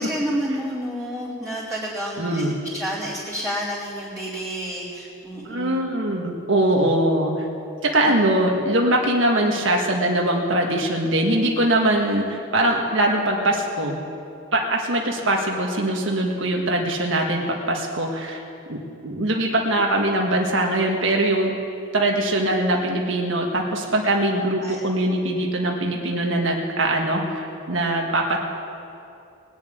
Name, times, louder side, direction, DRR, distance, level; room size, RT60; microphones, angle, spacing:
voice 1, 0.0-2.4 2.7-5.9 24.6-24.8, equal, ahead, -12 dB, 3.3 m, -29 dB
voice 2, 2.2-2.5 5.4-7.5 7.8-14.0 14.5-18.4 18.7-21.5 21.9-28.4, right 1 dB, 60° right, 0 dB, 1.6 m, -22 dB
20.5 x 7.4 x 9.3 m, 2.6 s
head